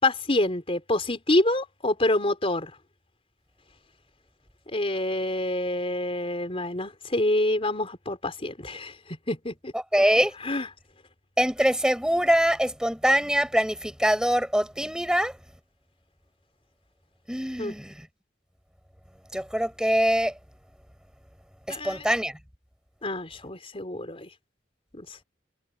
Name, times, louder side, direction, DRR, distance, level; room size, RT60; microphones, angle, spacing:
voice 1, 0.0-2.7 4.7-9.7 10.4-10.7 17.6-17.7 21.7-22.1 23.0-24.3 24.9-25.2, left 1 dB, 30° left, 4.5 m, -27 dB
voice 2, 9.7-10.4 11.4-15.4 17.3-17.9 19.3-20.3 21.7-22.4, equal, 5° right, 5.5 m, -23 dB
head